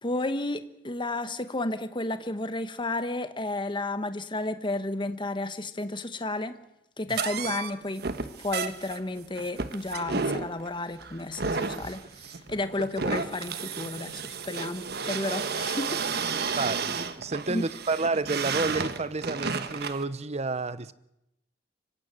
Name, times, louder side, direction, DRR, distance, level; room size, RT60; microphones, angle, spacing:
voice 1, 0.0-6.6 7.0-8.1 8.4-12.0 12.5-16.0 17.5-17.6, left 2 dB, 25° left, 1.2 m, -32 dB
sound 1, 7.1-20.0, right 5 dB, 60° right, 1.3 m, -32 dB
voice 2, 16.5-20.9, right 3 dB, 40° right, 0.8 m, -30 dB
25.0 x 15.5 x 8.9 m
head